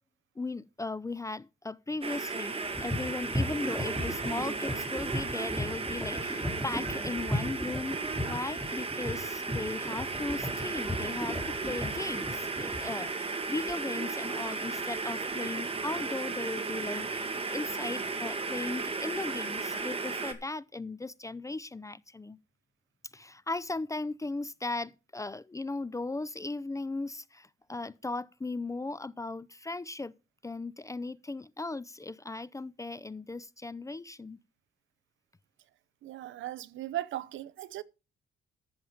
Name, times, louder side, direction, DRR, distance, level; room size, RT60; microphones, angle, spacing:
voice 1, 0.4-22.4 23.1-30.1 30.4-34.4, left 3 dB, 15° left, 0.5 m, -37 dB
sound 1, 2.0-20.3, right 4 dB, 30° right, 2.1 m, -35 dB
sound 2, 2.6-12.9, left 1 dB, ahead, 3.3 m, -37 dB
voice 2, 36.0-37.8, right 13 dB, 75° right, 0.8 m, -37 dB
13.5 x 7.0 x 5.1 m
cardioid pair, 90°, 20 cm